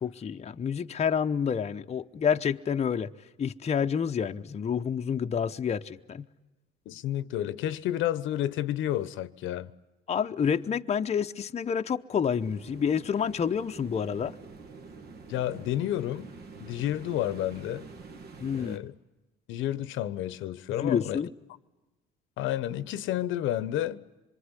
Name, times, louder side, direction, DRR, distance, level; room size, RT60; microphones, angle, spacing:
voice 1, 0.0-3.1 3.4-6.3 10.1-14.3 18.4-18.8 20.8-21.3, left 7 dB, 30° left, 0.9 m, -28 dB
voice 2, 6.9-9.7 15.3-16.3 16.6-17.9 18.5-18.9 19.5-21.2 22.4-24.0, left 12 dB, 75° left, 1.0 m, -30 dB
sound 1, 12.4-18.8, right 4 dB, 50° right, 2.1 m, -47 dB
26.0 x 23.0 x 9.8 m
cardioid pair, 110°, 20 cm